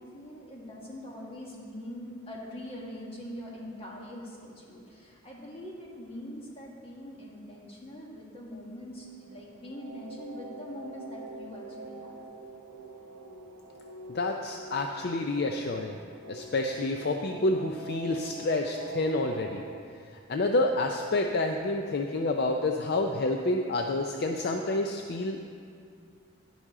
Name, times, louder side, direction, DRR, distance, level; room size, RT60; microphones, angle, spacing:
voice 1, 0.0-12.2, equal, 30° left, -3 dB, 1.6 m, -43 dB
sound 1, 9.1-19.8, right 3 dB, 85° right, 0.6 m, -45 dB
voice 2, 14.1-16.0 16.3-19.6 19.9-25.6, left 2 dB, 50° left, 4 dB, 0.4 m, -29 dB
11.0 x 10.5 x 3.7 m, 2.4 s
head